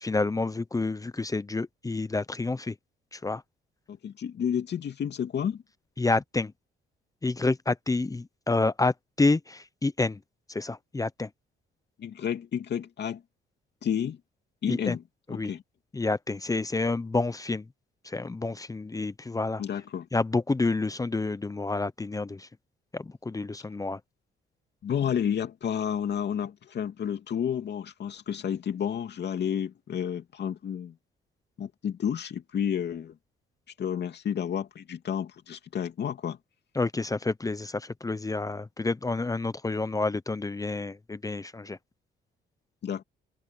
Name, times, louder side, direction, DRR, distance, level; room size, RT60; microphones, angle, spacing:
voice 1, 0.0-2.7 3.1-3.4 6.0-6.5 7.2-10.2 10.5-11.3 14.7-15.0 15.3-15.5 15.9-17.6 18.0-19.6 20.1-22.5 22.9-24.0 36.8-41.8, left 3 dB, 15° left, 0.8 m, -29 dB
voice 2, 3.9-5.6 12.0-13.2 13.8-14.2 14.6-15.0 15.3-15.6 19.6-20.1 24.8-31.0 31.6-33.2 33.8-36.4 42.8-43.0, left 8 dB, 60° left, 2.8 m, -31 dB
cardioid pair, 90°, 20 cm